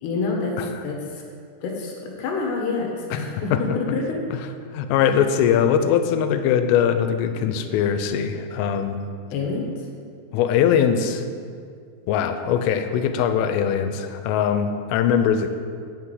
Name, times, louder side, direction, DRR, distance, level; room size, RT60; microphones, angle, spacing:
voice 1, 0.0-0.5 0.8-1.2 1.6-4.2 5.0-5.1 9.3-9.9, left 4 dB, 70° left, 0 dB, 3.0 m, -27 dB
voice 2, 4.7-9.0 10.3-11.2 12.1-15.5, left 8 dB, 90° left, 9 dB, 3.2 m, -21 dB
9.0 x 5.9 x 7.8 m, 2.2 s
omnidirectional pair, 5.7 m